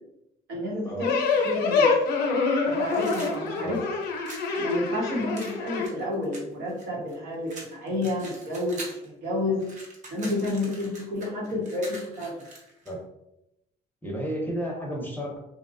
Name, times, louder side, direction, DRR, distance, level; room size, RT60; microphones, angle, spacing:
voice 1, 0.5-1.9 2.6-3.8 4.6-9.6 10.1-12.4, left 1 dB, 80° right, -3 dB, 1.1 m, -30 dB
sound 1, 1.0-5.9, left 4 dB, 75° left, 0.6 m, -26 dB
sound 2, 2.9-4.5 5.3-7.1 7.5-9.1 9.4-12.9, right 2 dB, 45° right, 0.8 m, -43 dB
voice 2, 14.0-15.4, equal, 10° left, -1 dB, 0.6 m, -32 dB
2.8 x 2.1 x 2.5 m, 0.85 s
cardioid pair, 110°, 17 cm